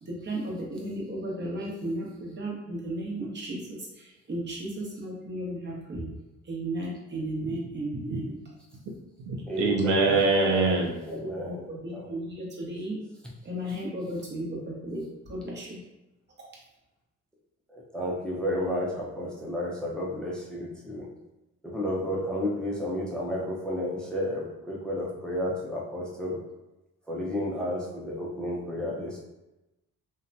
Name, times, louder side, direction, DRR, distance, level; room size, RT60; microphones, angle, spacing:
voice 1, 0.0-6.1 6.4-8.4 11.2-13.0 13.4-15.8, right 1 dB, 35° right, -3 dB, 0.9 m, -35 dB
voice 2, 7.9-8.3 8.9-11.0, right 4 dB, 80° right, 0 dB, 0.5 m, -26 dB
voice 3, 9.5-10.8 11.1-11.6 11.9-12.0 17.7-21.1 21.6-26.4 27.1-29.2, left 1 dB, 5° left, -4 dB, 0.5 m, -31 dB
2.7 x 2.2 x 2.6 m, 0.98 s
cardioid pair, 90°, 30 cm